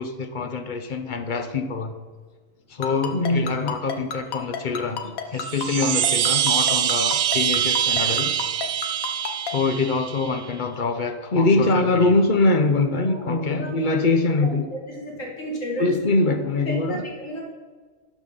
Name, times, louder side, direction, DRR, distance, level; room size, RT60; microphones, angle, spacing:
voice 1, 0.0-1.9 2.7-8.4 9.5-14.7 15.8-17.0, left 3 dB, 45° left, 7 dB, 0.8 m, -23 dB
Ringtone, 2.8-9.5, left 8 dB, 90° left, 1.3 m, -29 dB
sound 1, 5.3-10.4, right 10 dB, 85° right, 1.0 m, -24 dB
voice 2, 13.6-14.0 14.4-14.5 14.9-15.9 16.6-17.4, equal, 65° left, -2 dB, 2.6 m, -33 dB
11.5 x 5.2 x 5.5 m, 1.4 s
omnidirectional pair, 1.4 m